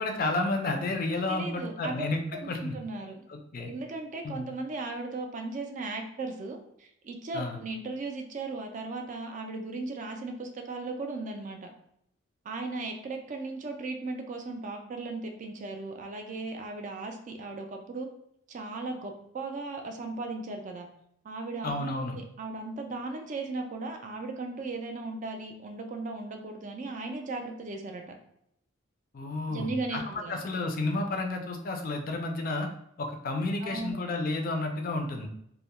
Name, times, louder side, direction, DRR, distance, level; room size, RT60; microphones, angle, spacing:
voice 1, 0.0-2.7 3.3-3.7 4.2-4.5 7.3-7.6 21.6-22.2 29.1-30.0 30.3-32.7 33.0-35.3, left 2 dB, 45° left, 3 dB, 0.3 m, -31 dB
voice 2, 1.3-2.1 2.3-3.2 3.6-11.7 12.5-18.1 18.5-20.9 21.2-28.0 29.5-30.3 33.6-33.9, right 3 dB, 40° right, 4 dB, 0.3 m, -37 dB
2.2 x 2.0 x 2.9 m, 0.74 s
head